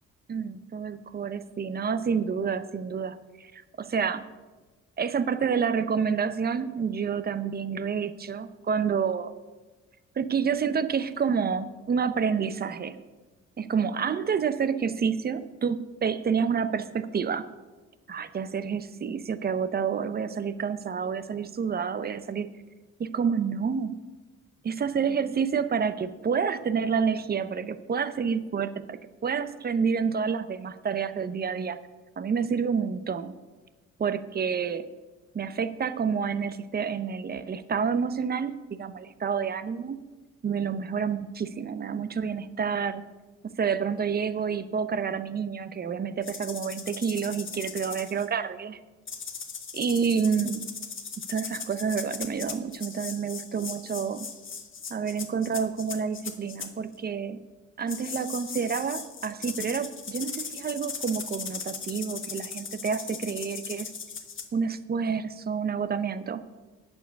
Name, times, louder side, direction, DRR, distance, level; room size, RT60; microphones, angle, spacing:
voice 1, 0.3-4.2 5.0-9.3 10.2-13.0 13.6-17.5 18.1-22.5 23.0-24.0 24.6-31.8 32.2-33.3 34.0-34.9 35.3-40.0 40.4-43.0 43.4-48.8 49.7-50.6 51.3-54.3 54.9-57.4 57.8-63.9 64.5-66.4, right 6 dB, 30° right, 13 dB, 0.6 m, -29 dB
sound 1, 46.2-48.3 49.1-56.7 57.9-64.4, left 6 dB, 40° left, 1.3 m, -38 dB
8.9 x 7.0 x 6.6 m, 1.2 s
cardioid pair, 90°, 30 cm